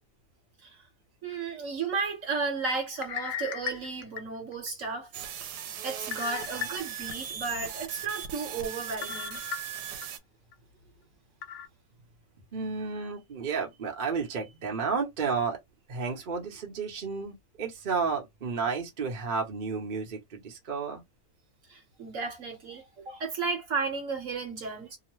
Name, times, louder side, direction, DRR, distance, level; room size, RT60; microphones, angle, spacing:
voice 1, 1.2-5.1 5.4-5.5 5.8-9.4 21.7-25.0, right 4 dB, 60° right, 1.2 m, -34 dB
sound 1, 2.9-4.7 5.2-5.3 6.1-7.2 7.6-7.7 9.0-10.1 10.5-10.6 11.4-11.7, left 10 dB, 70° left, 0.7 m, -37 dB
sound 2, 5.1-10.2, right 9 dB, 90° right, 1.2 m, -38 dB
voice 2, 12.5-15.6 15.9-21.0, right 5 dB, 40° right, 0.9 m, -32 dB
2.9 x 2.1 x 3.0 m
omnidirectional pair, 1.7 m